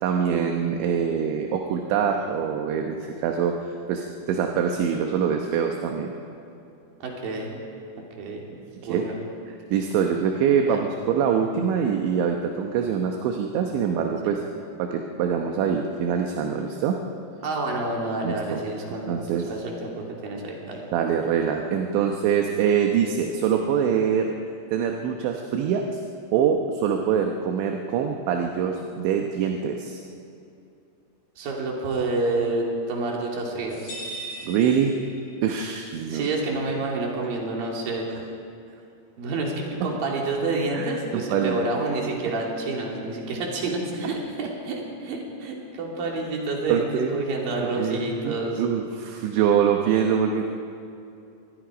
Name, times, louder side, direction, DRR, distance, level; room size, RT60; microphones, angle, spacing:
voice 1, 0.0-3.6 3.9-6.1 8.9-9.1 9.5-14.4 14.8-17.0 18.2-18.6 19.1-19.5 20.9-24.3 24.7-26.0 26.3-30.0 34.5-34.9 35.4-36.3 40.7-41.7 46.7-47.2 47.6-50.4, right 7 dB, 75° right, 3 dB, 3.1 m, -24 dB
voice 2, 7.0-7.5 8.2-8.4 8.8-9.2 10.7-10.8 17.4-20.8 31.4-33.9 36.1-38.1 39.2-48.6, right 2 dB, 50° right, -1 dB, 4.3 m, -28 dB
sound 1, 33.7-35.6, right 1 dB, 40° left, 7.5 m, -39 dB
26.0 x 20.5 x 5.2 m, 2.6 s
omnidirectional pair, 5.8 m